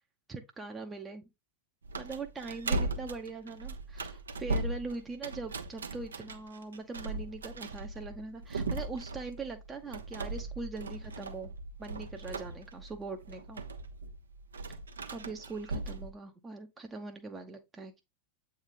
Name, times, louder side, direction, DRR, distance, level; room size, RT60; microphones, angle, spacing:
voice 1, 0.3-1.2 2.0-11.5 11.8-13.6 15.1-18.0, right 3 dB, 15° right, 0.6 m, -42 dB
sound 1, 1.8-16.1, right 2 dB, 70° right, 0.6 m, -38 dB
8.0 x 3.3 x 3.7 m
figure-of-eight pair, 90°, 0 cm